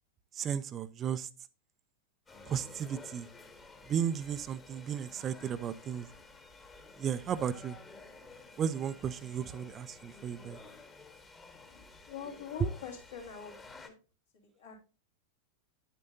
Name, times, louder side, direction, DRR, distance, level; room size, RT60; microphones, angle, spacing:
voice 1, 0.3-1.3 2.5-3.3 3.9-6.1 7.0-7.8 8.6-10.6 12.6-12.7, right 8 dB, 25° right, 0.5 m, -34 dB
sound 1, 2.3-13.9, left 3 dB, 15° left, 1.4 m, -53 dB
voice 2, 12.1-13.5 13.8-13.9 14.3-14.8, left 7 dB, 65° left, 3.0 m, -44 dB
9.1 x 8.3 x 2.6 m
figure-of-eight pair, 90°, 0 cm